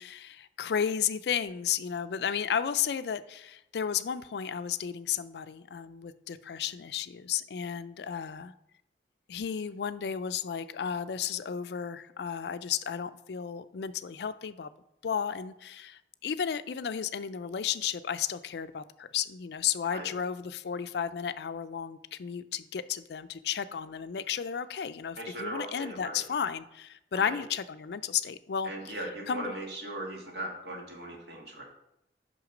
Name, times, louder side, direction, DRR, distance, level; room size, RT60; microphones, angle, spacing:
voice 1, 0.0-8.5 9.3-14.7 15.0-29.5, left 8 dB, 65° left, 13 dB, 0.4 m, -33 dB
voice 2, 25.2-26.2 27.1-27.4 28.6-31.6, right 1 dB, 70° right, 0 dB, 1.7 m, -38 dB
6.1 x 5.8 x 5.0 m, 0.84 s
head